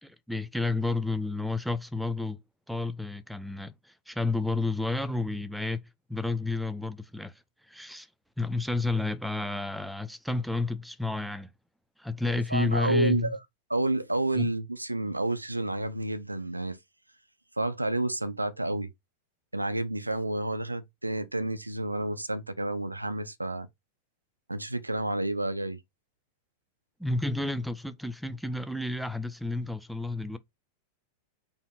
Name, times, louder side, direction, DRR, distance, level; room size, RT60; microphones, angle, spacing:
voice 1, 0.0-2.4 2.7-5.8 6.1-7.3 7.7-8.1 8.4-11.5 12.0-13.3 14.3-14.5 27.0-30.4, left 2 dB, ahead, 0.5 m, -31 dB
voice 2, 12.5-13.4 13.7-16.8 17.6-18.9 19.5-23.7 24.5-25.8, right 2 dB, 85° right, 0.4 m, -30 dB
4.2 x 2.9 x 4.2 m
figure-of-eight pair, 90°, 0 cm